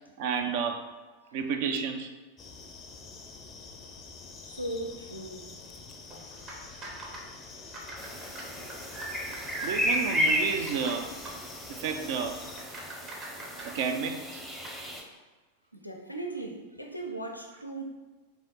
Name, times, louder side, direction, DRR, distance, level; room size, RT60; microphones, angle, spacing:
voice 1, 0.2-0.8 1.3-2.2 9.6-11.1 11.7-12.4 13.6-14.4, right 6 dB, 50° right, 6 dB, 0.5 m, -31 dB
sound 1, 2.4-12.6, left 4 dB, 25° left, 0.5 m, -47 dB
voice 2, 4.4-5.5 7.7-8.6 15.7-17.8, right 2 dB, 85° left, 2 dB, 0.5 m, -39 dB
sound 2, 6.0-14.8, right 1 dB, 30° right, 1.1 m, -47 dB
sound 3, 8.0-15.0, equal, 5° right, 0.8 m, -33 dB
3.5 x 3.3 x 3.9 m, 1.3 s
figure-of-eight pair, 90°, 0 cm